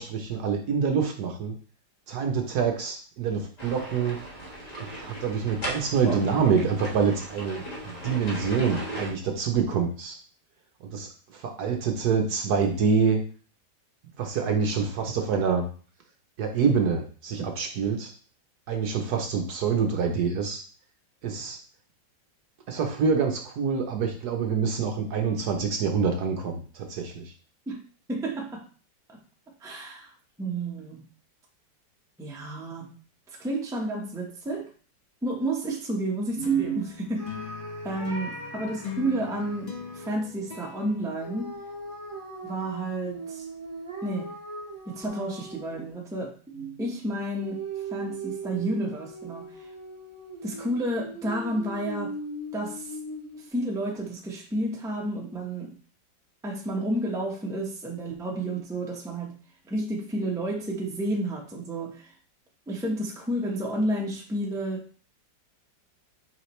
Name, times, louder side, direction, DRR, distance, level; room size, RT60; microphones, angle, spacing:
voice 1, 0.0-1.5 2.1-4.2 5.0-10.2 10.9-13.2 14.2-15.7 16.4-18.1 18.7-20.6 21.2-21.6 22.7-27.3, right 6 dB, 65° right, 4 dB, 1.2 m, -26 dB
sound 1, 3.6-9.1, right 1 dB, 25° left, 1.2 m, -37 dB
voice 2, 28.1-28.7 29.1-29.2 29.6-30.1 30.4-31.0 32.2-32.9 33.4-34.7 35.2-37.3 37.8-41.5 42.4-43.5 44.0-44.3 44.9-47.6 47.9-49.7 50.4-52.2 52.5-52.9 53.4-55.7 56.4-59.3 59.7-62.1 62.7-65.0, right 1 dB, 5° right, -1 dB, 0.7 m, -31 dB
sound 2, 36.4-42.0, left 8 dB, 85° left, 0.4 m, -42 dB
sound 3, 37.2-40.1 41.2-46.0 47.4-53.5, right 2 dB, 20° right, 1.1 m, -39 dB
6.1 x 5.0 x 3.1 m, 0.40 s
omnidirectional pair, 2.1 m